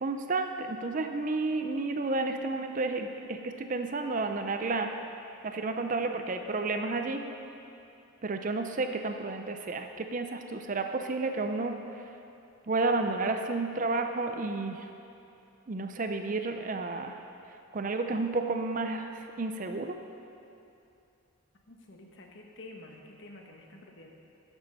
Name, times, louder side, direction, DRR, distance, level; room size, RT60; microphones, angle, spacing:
voice 1, 0.0-4.9 5.4-7.3 8.2-11.8 12.7-14.9 15.7-17.2 17.7-20.0, right 3 dB, 35° right, 6 dB, 0.5 m, -31 dB
voice 2, 21.7-24.1, left 2 dB, 55° left, 1 dB, 1.2 m, -49 dB
13.0 x 6.2 x 5.4 m, 2.7 s
head